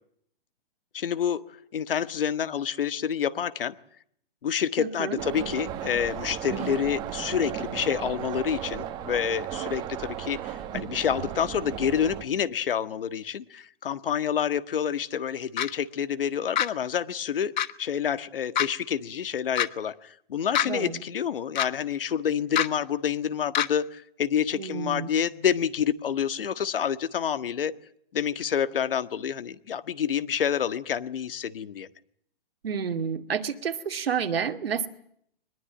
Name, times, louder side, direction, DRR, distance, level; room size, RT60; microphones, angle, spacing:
voice 1, 0.9-3.7 4.4-27.7 28.1-31.9, left 8 dB, 70° left, 14 dB, 1.6 m, -28 dB
voice 2, 4.8-5.2 20.6-21.0 24.5-25.1 32.6-34.9, right 7 dB, 85° right, 7 dB, 2.4 m, -30 dB
sound 1, 5.2-12.2, right 11 dB, 15° right, 1.4 m, -35 dB
sound 2, 15.6-15.7 16.5-16.7 17.6-17.7 18.5-18.7 19.5-19.7 20.5-20.7 21.5-21.7 22.5-22.7 23.5-23.7, left 10 dB, 50° left, 1.2 m, -24 dB
23.0 x 21.0 x 9.1 m, 0.68 s
hypercardioid pair, 165°, 29 cm